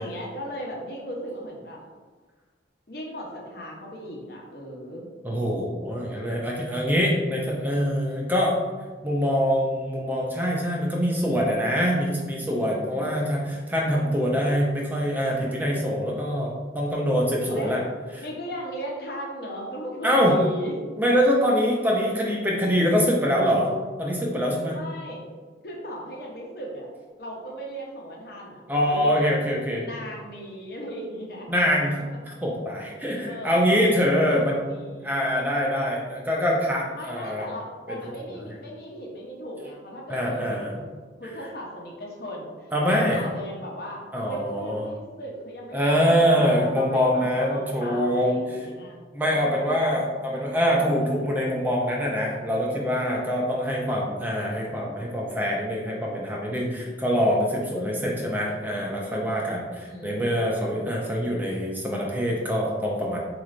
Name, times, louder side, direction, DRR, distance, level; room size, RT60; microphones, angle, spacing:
voice 1, 0.0-1.8 2.9-5.1 12.9-13.5 17.5-17.7 18.2-20.7 24.7-25.2 25.6-26.9 27.2-29.3 29.8-31.5 33.2-33.7 34.3-35.3 36.9-40.8 41.2-44.0 44.3-50.0 57.7-58.6 59.9-61.0, equal, 55° left, -2 dB, 0.7 m, -37 dB
voice 2, 5.2-8.6 9.0-17.8 20.0-20.3 21.0-23.7 24.0-24.8 28.7-29.8 31.5-32.0 32.4-34.8 35.0-37.5 37.9-38.0 40.1-40.7 42.7-43.2 44.1-44.8 45.7-48.3 49.1-63.2, equal, 10° right, -2 dB, 0.4 m, -24 dB
4.2 x 3.1 x 2.5 m, 1.4 s
head